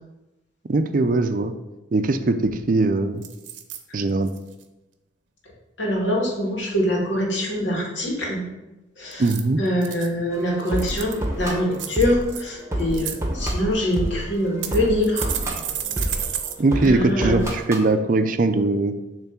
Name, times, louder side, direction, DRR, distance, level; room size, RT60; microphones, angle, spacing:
voice 1, 0.7-1.5 1.9-3.2 3.9-4.3 9.2-9.6 16.6-19.0, right 2 dB, 45° right, 8 dB, 0.4 m, -21 dB
sound 1, 2.1-2.2 2.4-2.8 3.2-3.8 4.3-4.6 9.1-10.1 10.6-11.2 11.7-12.4 12.8-13.2 13.9-14.0 14.6-16.6 16.8-16.9 17.3-17.4, right 9 dB, 85° right, 0.7 m, -32 dB
voice 2, 5.8-8.4 9.0-9.2 9.6-15.3 16.8-17.4, left 1 dB, 75° left, -3 dB, 2.1 m, -24 dB
sound 2, 10.3-17.9, right 1 dB, 15° right, 0.9 m, -29 dB
7.1 x 3.2 x 5.9 m, 1.0 s
head